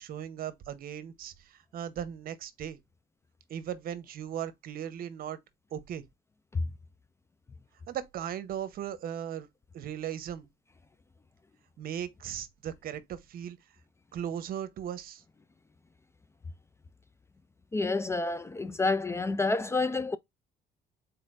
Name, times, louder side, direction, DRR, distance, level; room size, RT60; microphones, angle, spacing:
voice 1, 0.0-2.8 3.5-5.4 5.7-6.0 7.9-9.5 9.7-10.5 11.8-13.6 14.1-15.2, right 9 dB, 60° right, 0.9 m, -37 dB
voice 2, 17.7-20.2, left 3 dB, 15° left, 0.3 m, -29 dB
4.2 x 4.1 x 2.5 m
cardioid pair, 110°, 17 cm